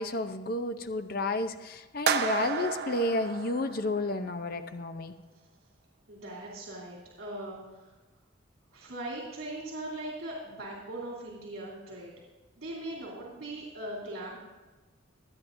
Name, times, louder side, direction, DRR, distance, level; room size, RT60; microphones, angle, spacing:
voice 1, 0.0-5.1, left 2 dB, 45° left, 9 dB, 0.6 m, -31 dB
sound 1, 2.1-4.3, right 6 dB, 50° right, 0.6 m, -32 dB
voice 2, 6.1-7.9 8.7-12.1 12.6-14.4, right 1 dB, 80° right, -5 dB, 3.3 m, -40 dB
25.0 x 9.0 x 2.6 m, 1.2 s
head